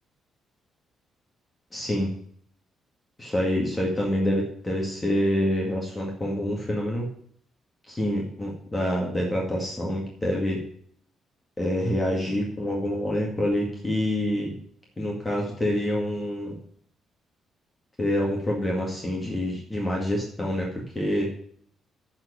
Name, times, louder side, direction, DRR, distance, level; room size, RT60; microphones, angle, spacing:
voice 1, 1.7-2.1 3.2-7.1 7.9-10.6 11.6-14.6 15.0-16.6 18.0-20.7 21.0-21.3, equal, 20° left, -2 dB, 2.1 m, -26 dB
10.0 x 4.4 x 7.0 m, 0.63 s
cardioid pair, 90°, 0 cm